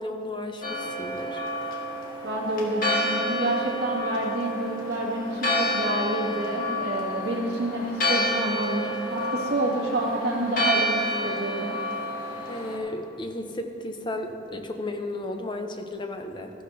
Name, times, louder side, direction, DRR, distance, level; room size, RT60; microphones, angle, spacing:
voice 1, 0.0-1.4 12.5-16.5, left 1 dB, 25° left, 4 dB, 0.8 m, -34 dB
Church bell, 0.6-12.8, equal, 55° left, 1.5 m, -29 dB
voice 2, 2.2-11.8, right 1 dB, 70° right, -4 dB, 2.2 m, -28 dB
14.0 x 11.5 x 2.8 m, 3.0 s
head